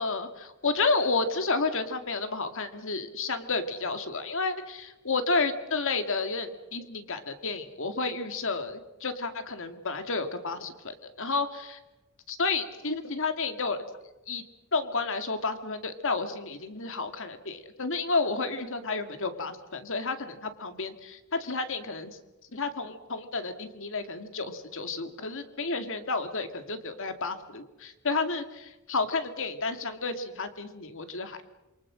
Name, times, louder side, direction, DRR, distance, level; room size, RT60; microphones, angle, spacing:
voice 1, 0.0-11.5 12.3-13.8 14.3-14.4 14.7-22.2 22.5-31.4, left 3 dB, 65° left, 8 dB, 2.4 m, -31 dB
28.0 x 24.0 x 6.4 m, 1.1 s
head